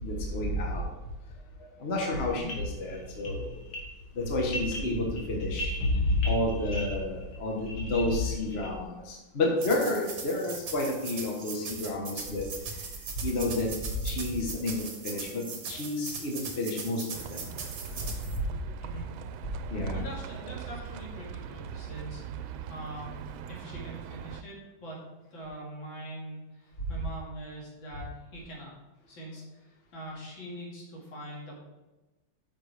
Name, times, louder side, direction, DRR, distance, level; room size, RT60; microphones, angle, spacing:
voice 1, 0.0-0.8 1.8-3.6 4.1-5.8 6.2-12.4 13.2-13.7 14.0-17.5 19.7-20.0, left 1 dB, 35° left, -1 dB, 1.5 m, -31 dB
sound 1, 2.1-8.9, left 2 dB, 60° left, 2.6 m, -33 dB
voice 2, 2.2-2.5 18.8-19.0 19.9-22.2 22.7-23.2 23.5-28.7 29.1-29.4 29.9-31.6, right 1 dB, 75° left, -3 dB, 2.9 m, -43 dB
sound 2, 9.6-18.4, right 4 dB, 50° right, 1.6 m, -40 dB
Livestock farm animals working animals, 17.1-24.4, right 7 dB, 90° right, 1.4 m, -41 dB
9.2 x 6.6 x 3.5 m, 1.1 s
omnidirectional pair, 2.1 m